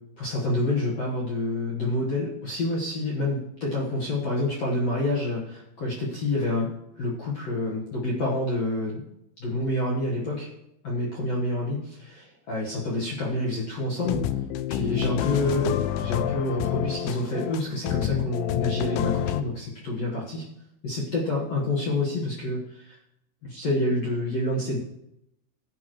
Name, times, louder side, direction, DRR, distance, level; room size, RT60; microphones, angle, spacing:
voice 1, 0.2-6.7 7.0-9.0 9.4-10.5 10.8-14.3 14.7-20.4 20.8-23.0 23.4-24.8, left 2 dB, 75° left, -5 dB, 1.5 m, -28 dB
sound 1, 14.0-19.4, left 11 dB, 90° left, 2.6 m, -28 dB
19.0 x 10.5 x 3.3 m, 0.84 s
omnidirectional pair, 5.9 m